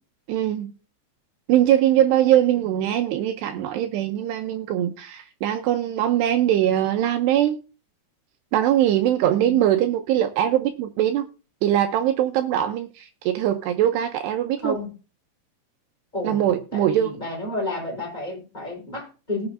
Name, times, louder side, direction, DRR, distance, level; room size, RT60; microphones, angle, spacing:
voice 1, 0.3-0.7 1.5-7.6 8.5-11.3 11.6-14.8 16.2-17.2, right 11 dB, 85° right, 2.4 m, -21 dB
voice 2, 9.2-9.6 14.6-14.9 16.1-19.5, left 2 dB, 10° left, 3.5 m, -31 dB
19.0 x 7.1 x 2.6 m
omnidirectional pair, 5.7 m